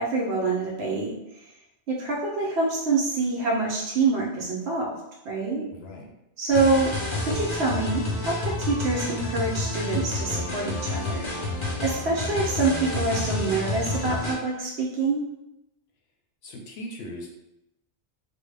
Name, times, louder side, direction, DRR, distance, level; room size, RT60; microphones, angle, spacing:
voice 1, 0.0-1.5 1.9-5.0 5.2-5.7 6.4-15.3, right 3 dB, 70° right, -2 dB, 0.9 m, -26 dB
voice 2, 5.7-6.1 16.4-17.3, left 1 dB, 65° left, 1 dB, 0.9 m, -39 dB
sound 1, 6.5-14.3, left 2 dB, 35° left, 0.5 m, -29 dB
3.4 x 2.0 x 3.3 m, 0.89 s
omnidirectional pair, 1.2 m